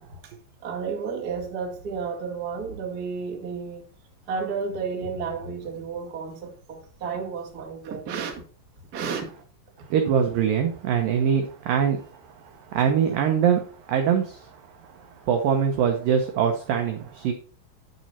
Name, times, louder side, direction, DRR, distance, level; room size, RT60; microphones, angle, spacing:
voice 1, 0.6-3.8 4.3-8.3 8.9-9.3, right 5 dB, 50° right, 1.1 m, -32 dB
voice 2, 9.9-12.0 12.7-13.6 13.9-14.4 15.3-17.3, right 7 dB, 80° right, 2.0 m, -22 dB
9.5 x 6.2 x 4.1 m
omnidirectional pair, 5.2 m